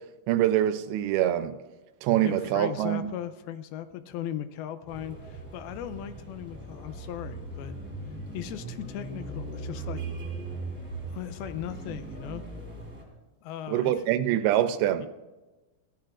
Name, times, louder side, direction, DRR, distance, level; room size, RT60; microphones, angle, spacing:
voice 1, 0.3-1.6 2.0-3.1 13.7-15.0, right 12 dB, 85° right, 2.5 m, -24 dB
voice 2, 2.2-7.8 8.3-10.1 11.1-12.4 13.4-14.2 15.0-15.1, left 11 dB, 85° left, 2.5 m, -38 dB
sound 1, 4.9-13.0, right 2 dB, 5° right, 2.9 m, -39 dB
16.5 x 15.0 x 2.5 m
omnidirectional pair, 4.5 m